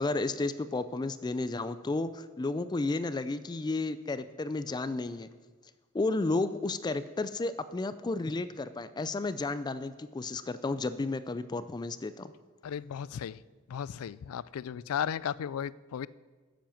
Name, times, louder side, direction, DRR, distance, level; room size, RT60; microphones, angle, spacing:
voice 1, 0.0-5.3 5.9-12.3, left 3 dB, 20° left, 13 dB, 0.3 m, -32 dB
voice 2, 12.6-13.4 13.7-16.1, left 8 dB, 90° left, 20 dB, 0.4 m, -35 dB
10.5 x 7.6 x 7.1 m, 1.3 s
head